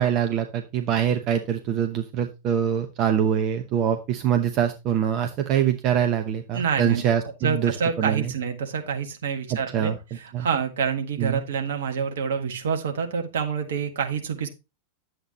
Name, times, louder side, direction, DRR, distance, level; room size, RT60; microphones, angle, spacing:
voice 1, 0.0-8.3 9.5-10.5 11.2-11.4, right 9 dB, 35° right, 6 dB, 0.9 m, -24 dB
voice 2, 6.5-7.0 7.4-9.9 10.4-14.5, right 6 dB, 60° right, 5 dB, 1.6 m, -27 dB
10.5 x 7.8 x 2.8 m, 0.26 s
figure-of-eight pair, 90°, 0 cm